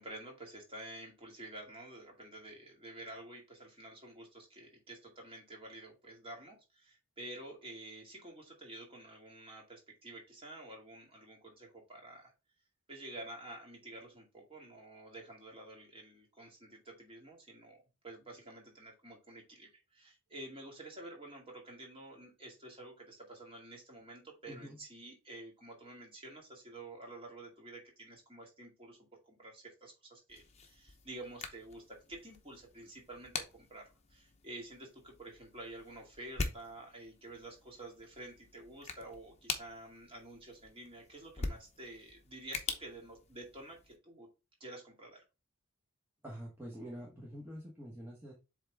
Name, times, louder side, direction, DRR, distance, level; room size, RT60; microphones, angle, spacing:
voice 1, 0.0-12.3 12.9-44.3 44.6-45.2, right 2 dB, 25° right, -1 dB, 2.3 m, -50 dB
voice 2, 24.5-24.8 46.2-48.3, equal, 10° right, -4 dB, 1.3 m, -46 dB
sound 1, 30.3-44.0, left 4 dB, 30° left, 0.9 m, -45 dB
7.8 x 3.5 x 3.5 m, 0.29 s
head